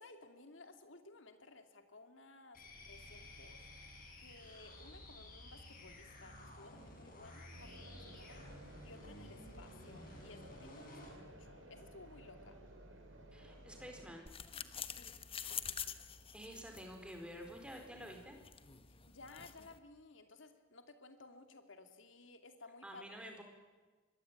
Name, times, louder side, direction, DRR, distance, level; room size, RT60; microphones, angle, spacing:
voice 1, 0.0-3.6 4.2-8.4 8.8-12.6 14.9-15.2 15.5-16.0 18.9-23.4, left 3 dB, 75° left, 7 dB, 2.6 m, -57 dB
sound 1, 2.5-11.2, left 1 dB, 45° left, 6.8 m, -54 dB
sound 2, 7.5-14.1, right 1 dB, 85° right, 5.1 m, -56 dB
voice 2, 13.3-14.3 16.3-18.4 22.8-23.4, equal, 5° right, 3 dB, 4.4 m, -50 dB
sound 3, 14.3-19.8, left 8 dB, 30° left, 1.1 m, -47 dB
24.5 x 21.0 x 8.9 m, 1.3 s
head